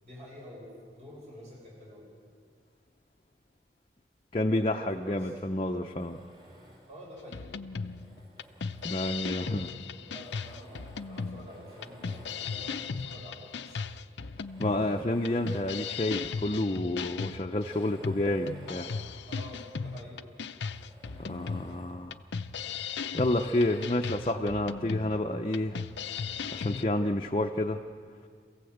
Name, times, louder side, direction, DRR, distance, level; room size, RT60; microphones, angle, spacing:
voice 1, 0.0-0.7 0.9-2.1 4.9-5.3 6.9-7.5 9.3-13.9 19.3-20.2, equal, 40° right, -3 dB, 6.2 m, -48 dB
voice 2, 4.3-6.2 8.8-9.7 14.6-18.9 21.2-22.2 23.1-25.8 26.5-27.8, left 1 dB, 30° left, 3 dB, 0.7 m, -29 dB
Tools, 6.0-7.1 7.7-9.4 10.1-13.0 13.7-13.8 14.3-16.1 16.4-16.5 17.4-19.9 20.2-20.3 20.7-22.0 23.0-24.0, equal, 25° right, 4.5 m, -54 dB
sound 1, 7.3-26.8, left 5 dB, 85° left, 0.6 m, -37 dB
27.0 x 16.0 x 8.0 m, 2.1 s
head